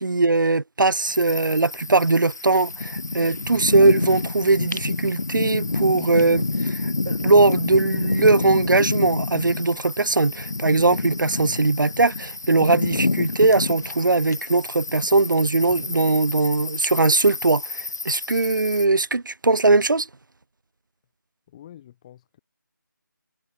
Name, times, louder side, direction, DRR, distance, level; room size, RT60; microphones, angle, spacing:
voice 1, 0.0-6.4 6.7-6.8 7.1-20.1, right 3 dB, 70° right, 0.8 m, -20 dB
sound 1, 1.1-18.9, left 3 dB, 55° left, 5.1 m, -28 dB
voice 2, 21.5-22.4, left 11 dB, 20° left, 7.1 m, -47 dB
figure-of-eight pair, 160°, 11 cm